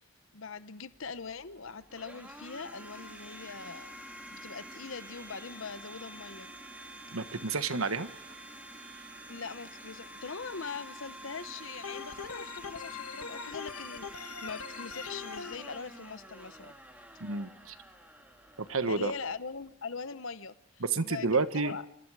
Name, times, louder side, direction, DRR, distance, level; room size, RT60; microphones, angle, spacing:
voice 1, 0.3-3.9 4.3-6.5 9.3-16.7 18.9-21.8, left 5 dB, 65° left, 1.0 m, -42 dB
Domestic sounds home sounds, 0.9-19.8, right 1 dB, 5° right, 2.7 m, -48 dB
voice 2, 7.1-8.1 17.2-17.7 18.6-19.1 20.8-21.7, right 4 dB, 75° right, 1.2 m, -30 dB
Organ, 11.8-15.5, left 6 dB, 90° left, 1.4 m, -42 dB
29.0 x 26.0 x 4.9 m
head